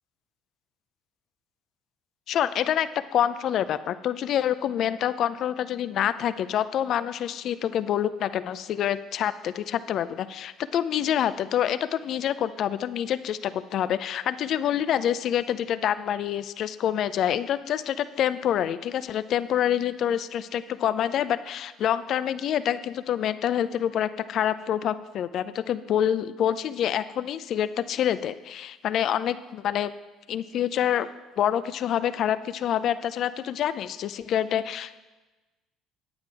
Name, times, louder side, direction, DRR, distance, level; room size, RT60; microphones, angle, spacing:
voice 1, 2.3-29.9 30.3-31.1 31.4-35.0, left 10 dB, 60° left, 14 dB, 0.5 m, -27 dB
9.6 x 8.8 x 4.8 m, 1.2 s
supercardioid pair, 75°, 0 cm